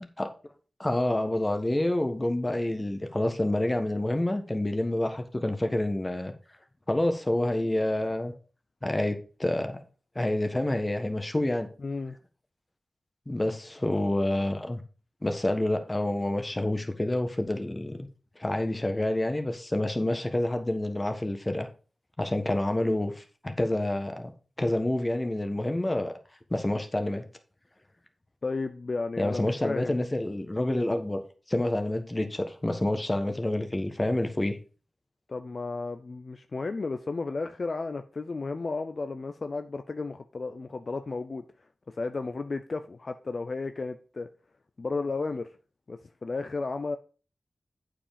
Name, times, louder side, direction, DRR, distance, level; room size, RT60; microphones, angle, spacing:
voice 1, 0.8-6.3 6.9-8.3 8.8-9.8 10.1-11.7 13.3-14.8 15.2-18.0 18.4-21.7 22.2-24.3 24.6-26.1 26.5-27.2 29.2-31.2 31.5-34.6, left 1 dB, 25° left, 1.4 m, -28 dB
voice 2, 11.8-12.2 28.4-30.0 35.3-41.4 41.9-44.3 44.8-45.5 45.9-47.0, left 3 dB, 55° left, 0.6 m, -33 dB
8.5 x 5.1 x 5.1 m
cardioid pair, 65°, 0 cm